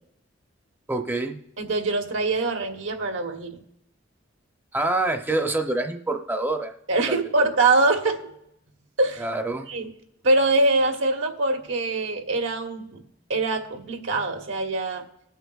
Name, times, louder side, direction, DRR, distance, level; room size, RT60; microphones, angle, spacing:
voice 1, 0.9-1.4 4.7-6.7 7.1-7.2 9.2-9.7, right 2 dB, 10° right, 4 dB, 0.6 m, -26 dB
voice 2, 1.6-3.6 6.9-8.2 9.0-9.3 9.7-9.9 10.2-13.0 13.3-15.0, right 2 dB, 85° right, 4 dB, 1.2 m, -23 dB
20.0 x 8.1 x 2.3 m, 0.79 s
head